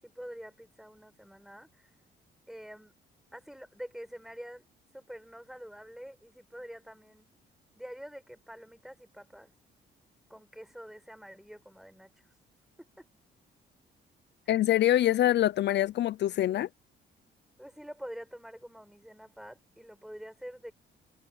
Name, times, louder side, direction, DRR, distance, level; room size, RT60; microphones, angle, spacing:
voice 1, 0.0-1.9 2.5-2.9 3.3-4.6 4.9-7.3 7.8-9.5 10.3-12.3 12.8-13.1 17.6-20.7, equal, ahead, 7.8 m, -46 dB
voice 2, 14.5-16.7, left 13 dB, 60° left, 0.5 m, -25 dB
cardioid pair, 90°, 20 cm